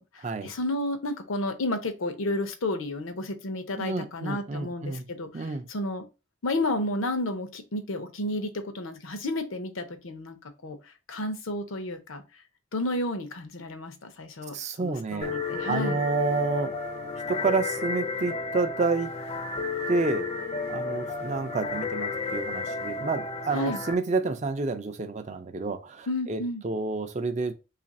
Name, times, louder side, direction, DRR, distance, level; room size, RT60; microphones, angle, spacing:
voice 1, 0.0-6.0 6.4-10.4 10.6-10.8 11.1-12.2 12.7-16.0 23.5-23.8 26.1-26.6, left 1 dB, 75° left, 0.7 m, -32 dB
voice 2, 3.8-5.0 5.3-5.7 14.5-15.3 15.7-16.8 17.3-19.1 19.9-20.3 20.7-27.5, right 3 dB, 35° right, 0.4 m, -29 dB
sound 1, 15.2-24.0, left 3 dB, 30° left, 0.5 m, -32 dB
3.2 x 2.4 x 4.1 m
head